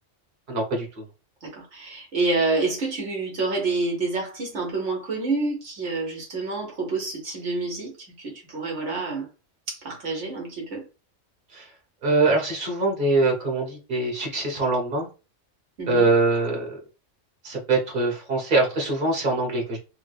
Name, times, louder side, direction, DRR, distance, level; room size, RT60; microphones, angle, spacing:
voice 1, 0.5-0.9 11.5-11.7 12.0-15.1 15.9-16.8 17.4-19.8, right 2 dB, 45° right, 1.4 m, -23 dB
voice 2, 1.4-9.3 9.7-10.8 15.8-16.1, right 3 dB, 75° right, 1.4 m, -28 dB
3.3 x 2.2 x 3.3 m
omnidirectional pair, 1.2 m